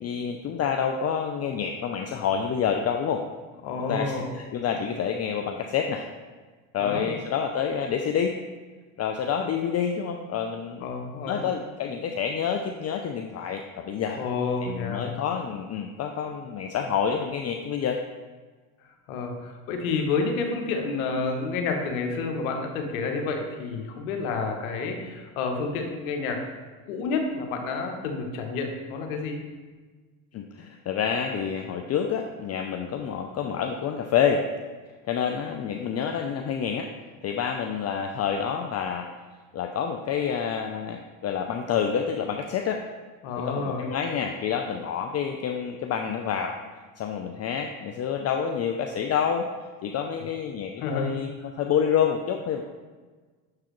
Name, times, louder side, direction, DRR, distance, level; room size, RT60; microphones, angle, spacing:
voice 1, 0.0-3.2 3.8-6.1 6.7-8.4 9.0-10.9 11.3-14.2 14.6-18.0 30.3-34.4 35.0-36.9 37.2-39.1 39.5-42.8 43.4-46.6 47.0-49.5 49.8-52.6, left 7 dB, 40° left, 4 dB, 0.5 m, -28 dB
voice 2, 3.6-4.3 6.8-7.1 10.8-11.5 14.2-15.1 19.1-26.5 26.9-29.4 43.2-43.8 50.8-51.1, left 4 dB, 90° left, 3 dB, 0.9 m, -29 dB
7.0 x 4.8 x 3.0 m, 1.4 s
supercardioid pair, 80°, 42 cm